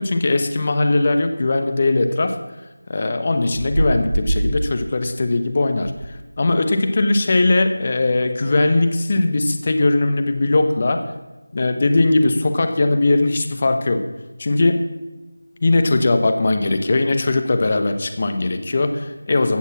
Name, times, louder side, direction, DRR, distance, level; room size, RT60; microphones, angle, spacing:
voice 1, 0.0-2.4 2.9-11.0 11.5-14.0 14.4-14.8 15.6-19.6, left 2 dB, 35° left, 8 dB, 1.2 m, -19 dB
sound 1, 3.5-4.7 5.8-6.1 6.4-6.6, right 1 dB, 45° right, 2.8 m, -23 dB
15.5 x 7.2 x 7.3 m, 1.1 s
figure-of-eight pair, 170°, 0 cm